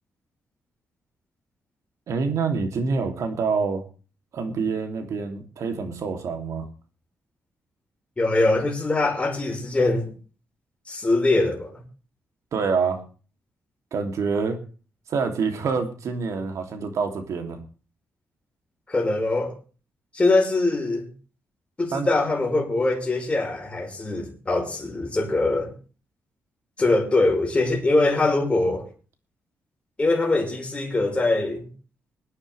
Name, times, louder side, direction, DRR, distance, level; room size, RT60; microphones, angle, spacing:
voice 1, 2.1-3.8 4.3-6.6 12.5-13.0 13.9-14.6 15.1-17.6 21.9-22.1, right 5 dB, 70° right, 3.0 m, -26 dB
voice 2, 8.2-10.1 10.9-11.8 18.9-19.6 20.1-21.1 21.8-25.7 26.8-28.9 30.0-31.7, left 2 dB, 20° left, 5.3 m, -22 dB
24.0 x 9.8 x 3.5 m
cardioid pair, 110°, 5 cm